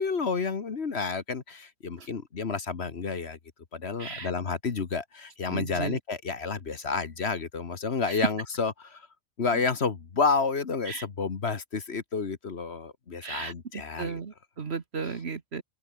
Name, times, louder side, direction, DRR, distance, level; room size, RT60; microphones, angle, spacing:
voice 1, 0.0-3.4 3.7-9.1 9.4-14.2, left 4 dB, 50° left, 1.6 m, -30 dB
voice 2, 4.0-4.3 5.5-6.0 8.1-8.3 10.9-11.1 13.2-15.6, right 5 dB, 45° right, 1.6 m, -34 dB
open air
omnidirectional pair, 1.5 m